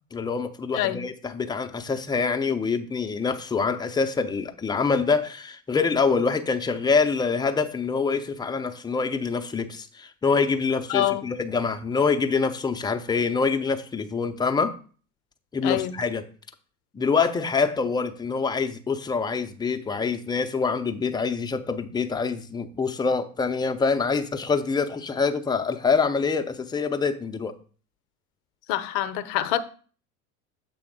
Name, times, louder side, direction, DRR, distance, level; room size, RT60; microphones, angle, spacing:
voice 1, 0.1-14.8 15.5-16.2 16.9-27.5, left 5 dB, 10° left, 0.5 m, -25 dB
voice 2, 10.9-11.2 15.6-15.9 28.7-29.6, left 13 dB, 55° left, 0.7 m, -25 dB
6.9 x 3.5 x 4.9 m
hypercardioid pair, 80°, 45 cm